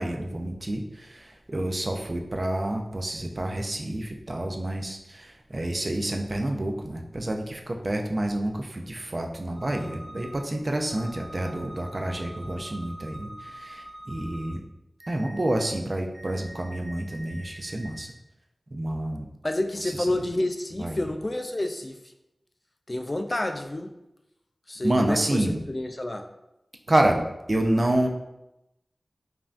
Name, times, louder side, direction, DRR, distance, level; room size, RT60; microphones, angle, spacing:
voice 1, 0.0-14.6 15.1-18.1 18.7-19.3 19.8-20.1 20.8-21.0 24.8-25.6 26.9-27.2 27.5-28.1, right 1 dB, 45° right, 3 dB, 0.4 m, -28 dB
sound 1, 9.6-10.4 10.9-14.5 15.0-15.6 16.1-18.1, right 1 dB, 15° right, 1.3 m, -45 dB
voice 2, 19.4-22.0 22.9-24.0 24.7-26.3, left 1 dB, 35° left, 6 dB, 0.3 m, -29 dB
5.3 x 2.6 x 2.4 m, 0.91 s
wide cardioid pair, 50°, 0 cm